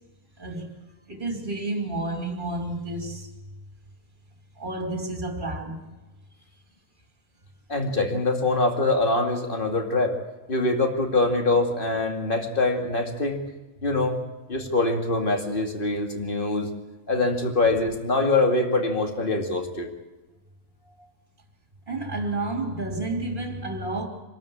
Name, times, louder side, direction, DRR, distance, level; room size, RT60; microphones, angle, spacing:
voice 1, 0.4-0.7 1.1-3.3 4.6-5.8 20.9-21.1 21.9-24.1, right 2 dB, 35° right, 3.1 m, -30 dB
voice 2, 7.7-10.2 10.5-13.4 13.8-14.2 14.5-16.7 17.1-19.9, left 2 dB, 40° left, 2.4 m, -24 dB
25.5 x 13.0 x 8.6 m
omnidirectional pair, 1.5 m